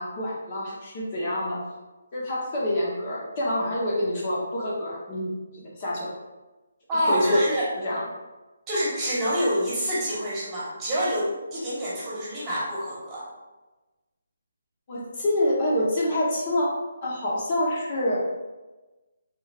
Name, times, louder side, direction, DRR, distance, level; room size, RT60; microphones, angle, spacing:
voice 1, 0.0-1.6 2.1-6.1 6.9-7.5 7.8-8.1 14.9-16.7 17.0-18.2, left 1 dB, 35° left, -5 dB, 1.0 m, -27 dB
voice 2, 6.9-7.7 8.7-13.2, equal, 15° right, -8 dB, 1.3 m, -26 dB
5.0 x 3.3 x 2.4 m, 1.1 s
hypercardioid pair, 155°, 0 cm